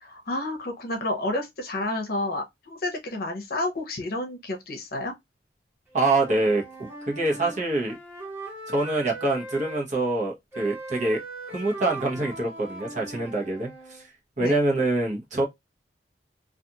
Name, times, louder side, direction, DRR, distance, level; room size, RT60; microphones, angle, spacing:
voice 1, 0.0-5.1 14.4-14.6, left 2 dB, 55° left, 0.7 m, -30 dB
Wind instrument woodwind instrument, 5.9-9.8 10.5-14.0, right 2 dB, 15° right, 1.0 m, -40 dB
voice 2, 5.9-8.0 8.7-11.2 11.5-14.0 14.4-15.5, right 2 dB, 45° right, 0.9 m, -25 dB
2.4 x 2.4 x 2.7 m
head